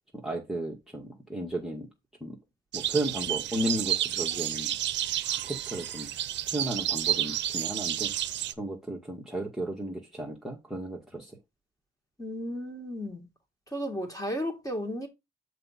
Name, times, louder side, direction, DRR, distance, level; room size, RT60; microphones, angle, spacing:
voice 1, 0.2-1.9 2.2-2.4 2.7-4.7 5.4-6.1 6.5-8.1 8.6-11.4, right 1 dB, ahead, 1.6 m, -34 dB
sound 1, 2.7-8.5, right 12 dB, 65° right, 0.6 m, -30 dB
voice 2, 12.2-13.3 13.7-15.1, equal, 15° left, 2.3 m, -34 dB
6.8 x 4.6 x 4.1 m
cardioid pair, 90°, 20 cm